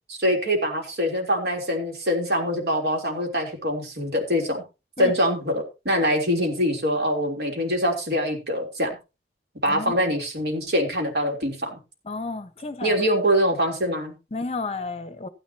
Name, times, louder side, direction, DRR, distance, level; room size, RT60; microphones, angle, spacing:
voice 1, 0.1-4.6 5.0-8.9 9.6-11.8 12.8-14.2, equal, 65° right, 3.5 m, -24 dB
voice 2, 12.1-12.9 14.3-15.3, left 3 dB, 35° left, 0.9 m, -31 dB
14.5 x 10.0 x 2.9 m
head